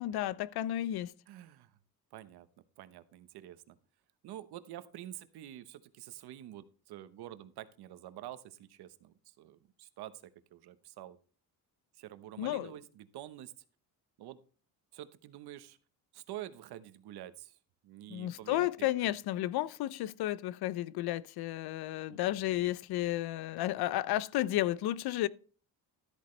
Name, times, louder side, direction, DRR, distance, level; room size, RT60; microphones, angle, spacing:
voice 1, 0.0-1.1 12.4-12.7 18.1-25.3, left 14 dB, 70° left, 0.6 m, -32 dB
voice 2, 1.3-1.7 2.1-2.5 2.8-3.8 4.2-10.2 10.5-11.2 12.0-13.5 14.2-14.4 14.9-15.8 16.1-17.6 17.8-19.1 22.1-22.4, right 13 dB, 75° right, 1.1 m, -48 dB
13.0 x 8.2 x 3.2 m
cardioid pair, 130°, 39 cm